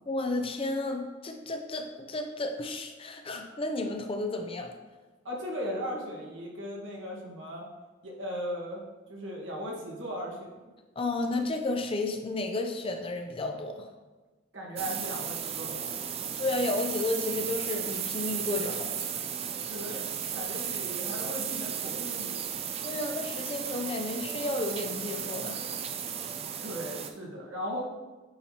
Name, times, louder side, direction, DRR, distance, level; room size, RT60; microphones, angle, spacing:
voice 1, 0.1-4.7 11.0-13.9 16.4-19.1 22.8-25.6, left 2 dB, 30° left, 4 dB, 0.5 m, -32 dB
voice 2, 5.2-7.6 8.0-8.8 9.1-10.7 14.5-16.2 19.6-22.6 26.6-27.8, equal, 75° right, -3 dB, 1.5 m, -37 dB
sound 1, 14.8-27.1, right 8 dB, 30° right, 0.4 m, -35 dB
8.6 x 4.4 x 2.9 m, 1.2 s
head